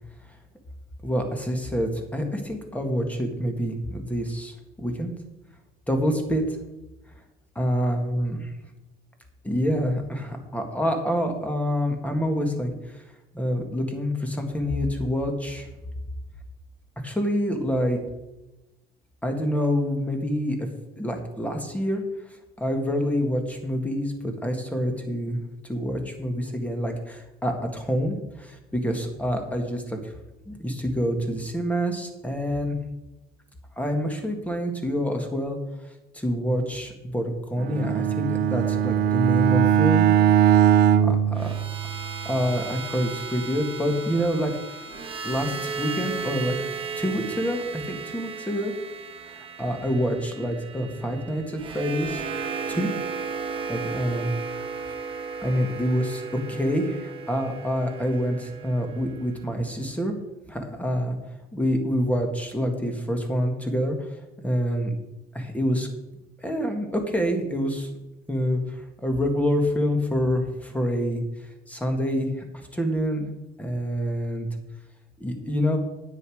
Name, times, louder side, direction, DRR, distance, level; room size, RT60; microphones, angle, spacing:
voice 1, 1.0-5.1 5.9-6.4 7.6-8.4 9.4-13.0 13.3-15.7 17.0-18.0 19.2-20.7 21.0-22.0 22.3-30.1 30.5-32.8 33.8-35.6 36.1-40.1 41.0-41.5 42.2-44.8 45.2-46.5 47.0-48.7 49.3-52.2 52.7-52.9 53.7-54.3 54.9-55.0 55.4-56.2 56.5-60.1 60.5-61.1 61.5-64.0 64.4-64.9 65.3-65.9 66.4-67.9 68.3-71.2 71.7-73.3 73.6-74.5 75.2-75.8, equal, 10° left, 4 dB, 1.9 m, -27 dB
Bowed string instrument, 37.6-42.2, right 9 dB, 75° right, 0.6 m, -20 dB
sound 1, 41.3-59.5, right 5 dB, 30° right, 1.3 m, -35 dB
9.7 x 8.3 x 4.9 m, 0.99 s
cardioid pair, 110°, 17 cm